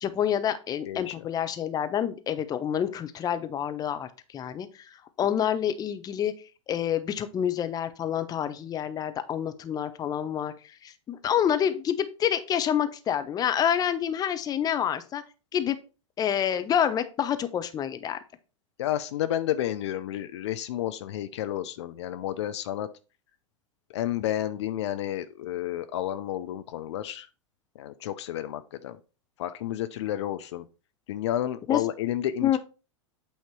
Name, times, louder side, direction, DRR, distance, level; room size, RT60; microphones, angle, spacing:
voice 1, 0.0-6.3 6.7-10.5 10.8-15.2 15.5-15.8 16.2-18.2 31.7-31.8 32.4-32.6, left 9 dB, 25° left, 10 dB, 0.7 m, -28 dB
voice 2, 0.9-1.3 18.8-22.9 23.9-27.3 27.8-29.0 29.4-30.6 31.1-32.6, left 12 dB, 60° left, 11 dB, 0.5 m, -31 dB
8.5 x 2.9 x 4.7 m, 0.33 s
hypercardioid pair, 100°, 16 cm